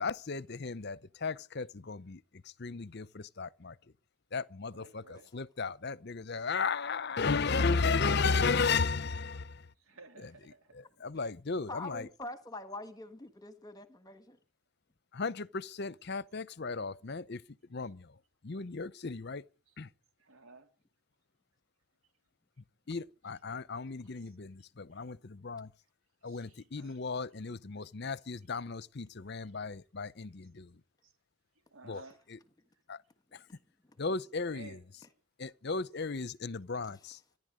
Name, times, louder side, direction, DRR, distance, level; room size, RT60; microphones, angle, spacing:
voice 1, 0.0-3.8 4.3-9.7 11.0-12.1 15.1-17.4 17.7-18.1 18.4-19.5 19.8-19.9 22.9-25.7 26.2-30.8 31.9-32.0 32.9-33.0 33.3-33.4 34.0-34.8 35.4-37.2, left 4 dB, 50° left, 0.7 m, -34 dB
voice 2, 4.7-5.3 9.7-11.0 17.8-17.9 19.7-19.8 20.2-20.7 23.8-24.4 24.9-25.1 26.2-27.0 27.8-27.9 28.5-28.6 29.4-29.6 30.4-30.6 31.0-31.1 31.7-32.3 33.5-33.6 34.4-34.8, right 3 dB, 70° right, 3.2 m, -56 dB
voice 3, 11.5-14.4 33.3-33.4 33.9-34.0, left 2 dB, 15° left, 1.5 m, -45 dB
26.0 x 11.0 x 5.1 m
head